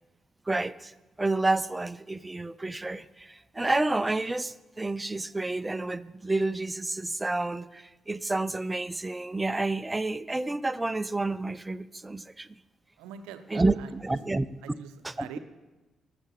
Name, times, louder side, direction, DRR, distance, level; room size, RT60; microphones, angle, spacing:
voice 1, 0.5-12.6 13.5-14.5 15.0-15.3, right 2 dB, 20° right, 16 dB, 0.5 m, -29 dB
voice 2, 13.0-14.2 14.6-15.4, right 9 dB, 75° right, 10 dB, 0.7 m, -45 dB
13.0 x 6.9 x 7.5 m, 1.1 s
hypercardioid pair, 40°, 0 cm